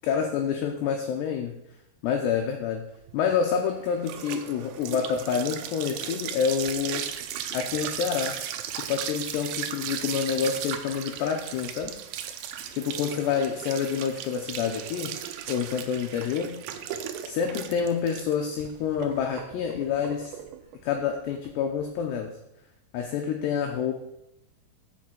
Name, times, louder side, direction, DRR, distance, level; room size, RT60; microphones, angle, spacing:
voice 1, 0.0-1.5 2.0-2.8 3.1-7.1 7.5-8.3 8.9-11.9 12.7-15.1 15.5-16.5 17.3-20.3 20.8-22.3 22.9-23.9, left 7 dB, 80° left, 3 dB, 2.5 m, -28 dB
sound 1, 3.0-22.1, right 9 dB, 80° right, 2.4 m, -36 dB
7.1 x 6.4 x 7.6 m, 0.84 s
omnidirectional pair, 5.8 m